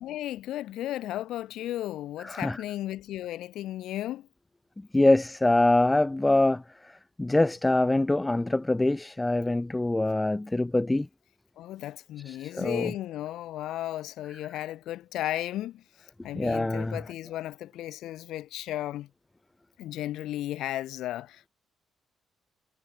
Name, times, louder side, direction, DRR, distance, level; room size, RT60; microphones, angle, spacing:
voice 1, 0.0-4.3 11.6-15.8 16.2-19.1 19.8-21.5, left 14 dB, 85° left, 1.9 m, -34 dB
voice 2, 2.2-2.6 4.9-6.6 7.2-11.1 12.3-12.9 16.3-17.0, left 2 dB, 15° left, 0.7 m, -24 dB
cardioid pair, 90°, 0 cm